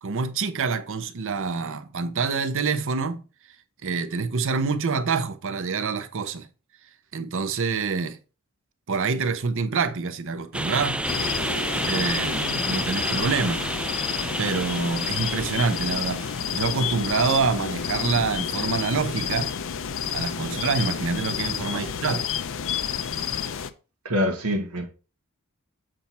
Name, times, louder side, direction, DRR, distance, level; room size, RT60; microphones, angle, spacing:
voice 1, 0.0-3.2 3.8-6.5 7.1-8.2 8.9-11.0 11.9-13.6 14.4-16.2 16.5-19.5 20.1-22.2, right 4 dB, 65° right, 0.7 m, -26 dB
sound 1, 10.5-16.7, right 1 dB, 5° right, 0.4 m, -30 dB
sound 2, 11.1-23.7, left 8 dB, 65° left, 0.6 m, -30 dB
voice 2, 24.0-24.9, equal, 90° right, 1.4 m, -25 dB
7.8 x 4.4 x 4.3 m
head